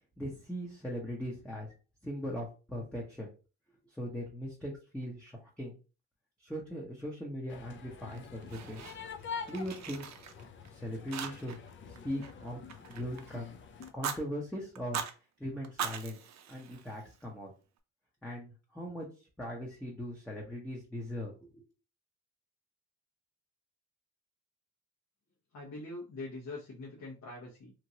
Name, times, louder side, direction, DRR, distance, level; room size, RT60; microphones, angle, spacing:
voice 1, 0.2-1.7 2.0-3.3 3.8-5.8 6.4-8.8 9.5-10.1 10.7-11.6 11.8-13.6 13.9-15.0 15.4-16.2 16.5-17.5 18.2-19.1 19.4-21.6, equal, 5° left, -3 dB, 0.8 m, -40 dB
sound 1, 7.5-13.9, left 6 dB, 40° left, 0.5 m, -46 dB
Fire, 8.1-9.2 9.5-10.7 11.1-11.7 11.9-13.3 13.8-14.2 14.7-15.1 15.6-17.2, right 7 dB, 65° right, 0.6 m, -40 dB
voice 2, 25.5-27.7, left 2 dB, 65° left, -4 dB, 1.1 m, -43 dB
2.9 x 2.5 x 2.8 m, 0.34 s
cardioid pair, 90°, 30 cm